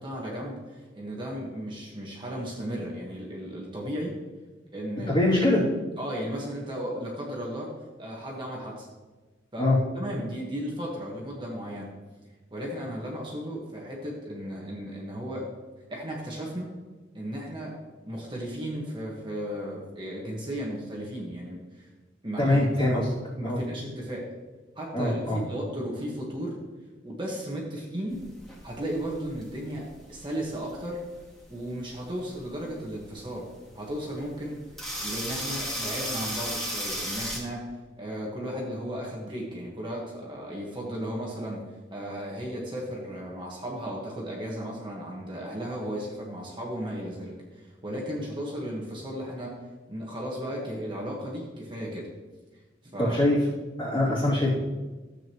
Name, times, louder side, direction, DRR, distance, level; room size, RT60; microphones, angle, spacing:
voice 1, 0.0-4.2 4.7-5.2 6.0-7.7 8.0-8.9 9.5-9.7 9.9-11.9 12.5-15.5 15.9-16.7 17.1-17.7 18.1-21.9 22.2-22.6 22.9-23.0 23.4-24.3 24.7-26.6 27.0-28.2 28.6-31.0 31.5-33.5 33.7-37.7 38.0-49.6 49.9-52.1 52.8-53.2 54.0-54.1, equal, 25° right, -3 dB, 1.5 m, -35 dB
voice 2, 5.1-5.6 9.6-9.8 22.4-23.1 23.4-23.6 24.9-25.4 53.0-53.4 53.8-54.6, left 1 dB, 30° left, -11 dB, 3.0 m, -23 dB
sound 1, 28.1-37.4, equal, 5° left, 2.0 m, -35 dB
13.5 x 8.2 x 3.1 m, 1.2 s
head